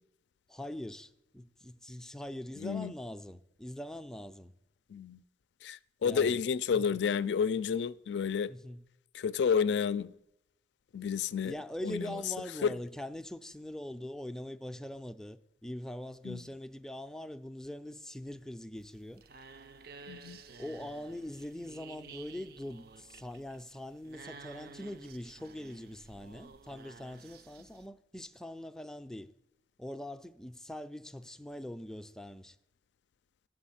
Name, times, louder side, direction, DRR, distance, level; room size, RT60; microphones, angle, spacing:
voice 1, 0.5-4.5 6.0-6.5 6.7-7.0 8.5-8.8 11.4-19.2 20.6-29.3 29.8-32.6, left 1 dB, 5° left, 0.4 m, -42 dB
voice 2, 2.6-2.9 4.9-5.2 5.6-8.5 9.1-10.1 10.9-11.5 11.8-12.2 12.6-12.7 16.2-16.4 20.1-20.4, left 6 dB, 80° left, 0.4 m, -30 dB
sound 1, 18.8-27.9, right 4 dB, 55° right, 0.5 m, -53 dB
9.8 x 6.9 x 5.7 m
head